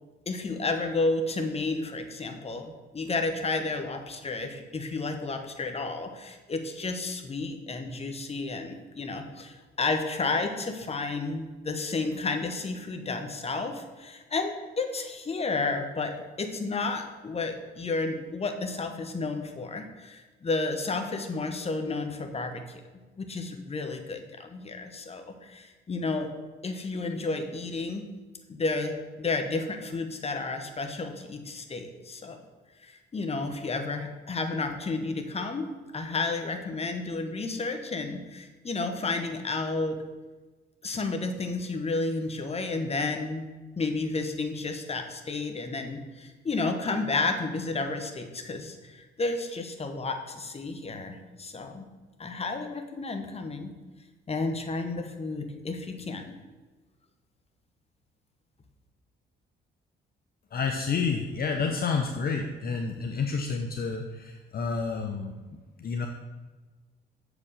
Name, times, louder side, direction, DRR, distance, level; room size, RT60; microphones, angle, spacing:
voice 1, 0.3-22.6 23.2-26.3 26.6-28.0 28.5-32.4 32.8-35.7 35.9-40.0 40.8-43.5 43.8-51.9 52.2-53.7 54.3-56.3, left 3 dB, 30° left, 6 dB, 1.1 m, -31 dB
voice 2, 60.5-65.3 65.8-66.1, left 5 dB, 50° left, 3 dB, 0.8 m, -29 dB
7.0 x 5.0 x 6.6 m, 1.3 s
cardioid pair, 90°, 20 cm